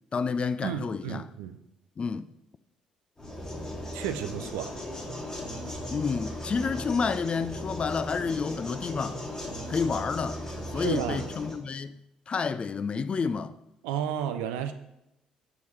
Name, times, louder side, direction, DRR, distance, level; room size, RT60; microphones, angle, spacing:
voice 1, 0.1-1.3 2.0-2.3 5.9-9.2 9.7-12.0 12.3-13.6, left 5 dB, 35° left, 0.4 m, -30 dB
voice 2, 0.6-1.6 3.9-4.7 10.7-11.3 13.8-14.7, right 9 dB, 70° right, 0.5 m, -32 dB
sound 1, 3.2-11.6, equal, 15° left, 1.4 m, -37 dB
6.9 x 6.1 x 3.0 m
figure-of-eight pair, 50°, 3 cm